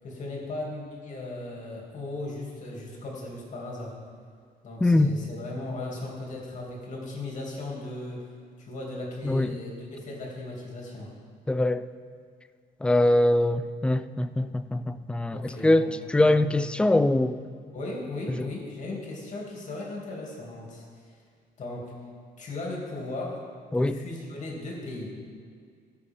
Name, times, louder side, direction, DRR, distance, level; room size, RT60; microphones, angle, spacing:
voice 1, 0.0-4.0 4.6-8.3 8.6-11.1 15.3-16.4 17.7-21.1 21.6-21.9 22.4-23.4 23.7-25.1, left 2 dB, 45° left, -2 dB, 2.8 m, -37 dB
voice 2, 4.8-5.1 9.2-9.6 11.5-11.8 12.8-17.4 23.7-24.0, left 1 dB, 5° left, 13 dB, 0.3 m, -23 dB
15.0 x 6.7 x 3.7 m, 2.1 s
cardioid pair, 110°, 17 cm